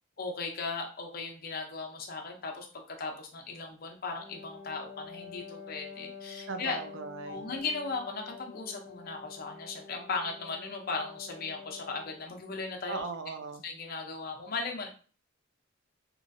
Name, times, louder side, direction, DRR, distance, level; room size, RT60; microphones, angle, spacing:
voice 1, 0.2-6.8 7.3-13.0 13.6-14.9, left 4 dB, 50° left, 2 dB, 0.6 m, -37 dB
Wind instrument woodwind instrument, 4.2-12.3, left 6 dB, 5° right, 1.2 m, -47 dB
voice 2, 6.5-7.5 12.9-13.6, right 5 dB, 65° right, 8 dB, 0.4 m, -39 dB
3.0 x 2.3 x 2.6 m, 0.39 s
head